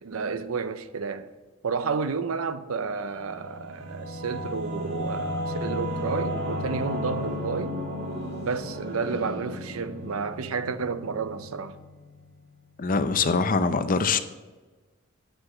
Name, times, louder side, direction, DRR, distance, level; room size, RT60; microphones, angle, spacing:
voice 1, 0.0-1.3 1.6-7.8 8.4-11.8, right 5 dB, 85° right, 0.6 m, -31 dB
Singing / Musical instrument, 3.2-12.4, equal, 55° right, 1.6 m, -34 dB
voice 2, 12.8-14.2, left 4 dB, 40° left, 0.6 m, -23 dB
8.9 x 4.9 x 7.2 m
head